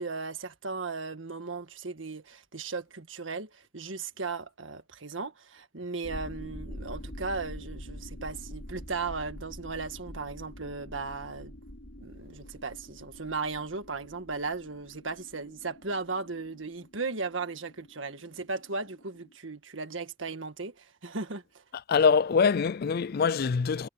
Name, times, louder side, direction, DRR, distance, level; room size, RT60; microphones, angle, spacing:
voice 1, 0.0-11.5 12.0-21.6, right 4 dB, 90° right, 1.6 m, -36 dB
sound 1, 6.0-19.3, equal, 75° left, 5.8 m, -45 dB
voice 2, 21.9-23.9, left 5 dB, 50° left, 0.4 m, -24 dB
head